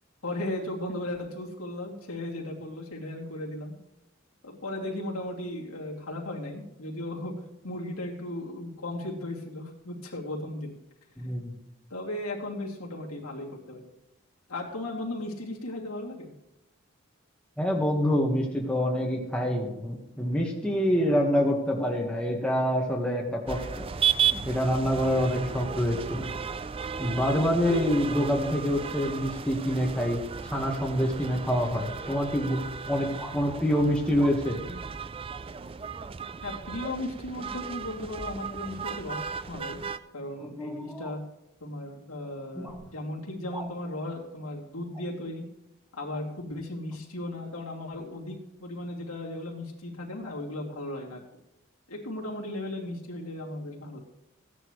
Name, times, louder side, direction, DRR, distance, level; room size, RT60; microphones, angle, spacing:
voice 1, 0.2-3.7 4.4-7.3 7.6-10.7 11.9-13.9 14.5-16.3 36.4-39.8 40.1-41.2 41.6-45.5 45.9-51.2 51.9-54.0, left 1 dB, 85° left, -2 dB, 2.7 m, -36 dB
voice 2, 11.2-11.6 17.6-23.9 24.3-26.3 27.0-34.6 40.4-41.1 42.5-42.7, equal, 5° left, -2 dB, 1.4 m, -26 dB
sound 1, 23.5-40.0, right 7 dB, 25° right, 0.3 m, -34 dB
sound 2, 33.2-33.4 34.2-34.4 36.8-37.0 39.4-39.7 41.0-41.2 42.6-42.8 43.5-43.7 44.9-45.1, right 1 dB, 10° right, 1.0 m, -43 dB
16.0 x 10.0 x 3.2 m, 0.93 s
head